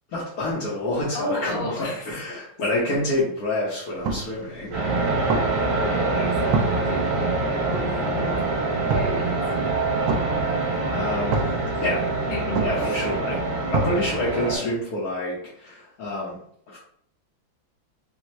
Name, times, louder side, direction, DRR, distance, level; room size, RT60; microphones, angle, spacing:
voice 1, 0.1-4.8 10.9-11.5 11.8-12.1 12.6-13.4 13.7-16.4 16.7-16.8, left 1 dB, 55° left, -8 dB, 1.2 m, -27 dB
voice 2, 1.1-2.4 2.7-3.0 5.9-7.3 7.7-8.4 8.9-9.3 12.3-13.0 14.2-14.7, left 2 dB, 80° left, -4 dB, 1.7 m, -33 dB
sound 1, 3.9-14.6, right 4 dB, 80° right, 1.3 m, -31 dB
sound 2, 4.7-14.6, right 3 dB, 50° right, 1.2 m, -25 dB
4.3 x 2.3 x 3.0 m, 0.66 s
omnidirectional pair, 2.1 m